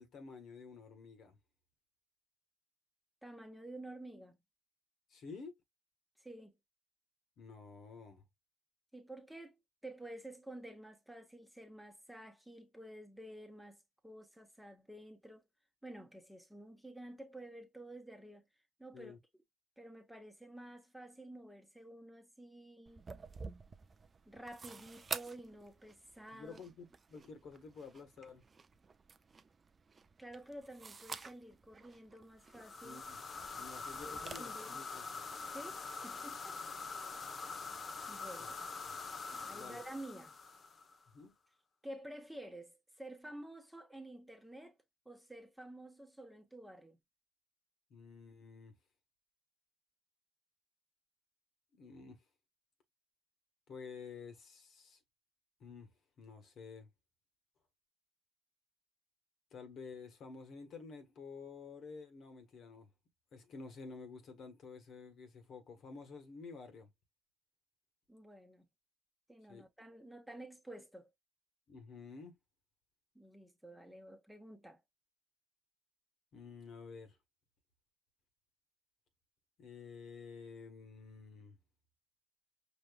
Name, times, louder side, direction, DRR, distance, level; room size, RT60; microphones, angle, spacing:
voice 1, 0.0-1.4 5.1-5.6 7.4-8.2 18.9-19.2 26.3-28.4 32.8-33.2 33.5-35.2 38.4-38.5 38.8-39.0 39.5-39.8 41.1-41.3 47.9-48.8 51.7-52.2 53.7-55.0 55.6-55.9 56.2-56.9 59.5-62.9 63.3-66.9 69.5-69.7 71.7-72.4 76.3-77.2 79.6-81.6, left 4 dB, 55° left, 1.5 m, -51 dB
voice 2, 3.2-4.4 6.2-6.6 8.9-15.4 15.8-18.5 18.8-19.1 19.8-23.0 24.3-26.6 30.2-33.0 34.0-34.8 35.5-36.6 37.2-37.5 38.1-38.5 39.3-40.4 41.8-44.7 45.0-47.0 68.1-68.7 69.3-71.1 73.1-74.8, right 1 dB, 5° right, 1.2 m, -51 dB
sound 1, 22.9-34.4, right 4 dB, 30° right, 0.5 m, -50 dB
sound 2, 32.5-41.0, left 4 dB, 35° left, 0.9 m, -45 dB
5.2 x 3.0 x 2.4 m
supercardioid pair, 70°, 0 cm